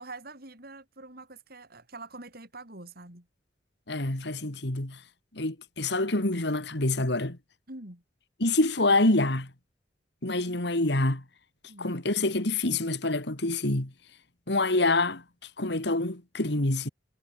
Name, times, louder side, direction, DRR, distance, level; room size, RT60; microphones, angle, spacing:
voice 1, 0.0-3.3 7.7-8.0 11.7-11.9, right 2 dB, 55° right, 7.2 m, -45 dB
voice 2, 3.9-5.0 5.3-7.4 8.4-9.5 10.2-11.2 11.8-13.9 14.5-15.2 15.6-16.9, left 2 dB, 70° left, 2.7 m, -26 dB
head